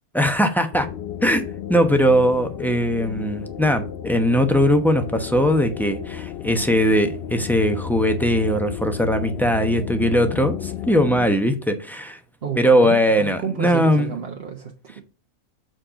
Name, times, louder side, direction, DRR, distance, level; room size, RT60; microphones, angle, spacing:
voice 1, 0.1-0.9 1.2-12.2 12.6-14.1, equal, ahead, 0.8 m, -20 dB
sound 1, 0.7-11.3, left 9 dB, 65° left, 0.6 m, -33 dB
voice 2, 12.4-15.0, right 6 dB, 50° right, 1.1 m, -31 dB
7.9 x 4.4 x 5.0 m
omnidirectional pair, 1.4 m